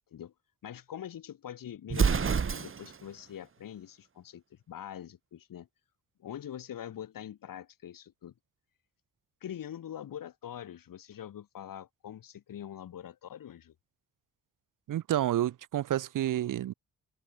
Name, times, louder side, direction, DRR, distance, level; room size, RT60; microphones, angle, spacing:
voice 1, 0.6-5.7 6.2-8.3 9.4-13.7, left 10 dB, 80° left, 6.0 m, -44 dB
Explosion, 1.9-3.0, right 6 dB, 40° right, 1.2 m, -27 dB
voice 2, 14.9-16.7, right 12 dB, 70° right, 0.8 m, -29 dB
supercardioid pair, 50°, 33 cm